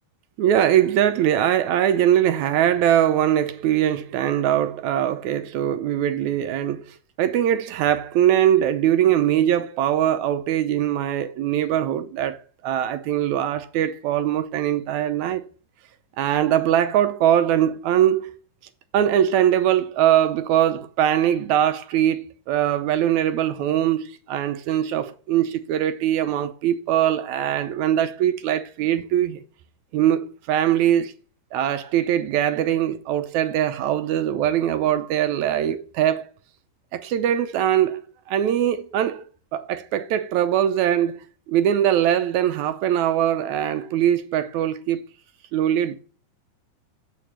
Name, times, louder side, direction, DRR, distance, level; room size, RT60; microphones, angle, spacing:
voice 1, 0.4-12.4 12.6-15.4 16.2-18.3 18.9-29.4 29.9-31.1 31.5-36.2 36.9-38.0 38.3-39.2 39.5-45.0 45.5-46.0, right 10 dB, 75° right, 2.0 m, -21 dB
8.1 x 5.1 x 7.3 m
omnidirectional pair, 3.7 m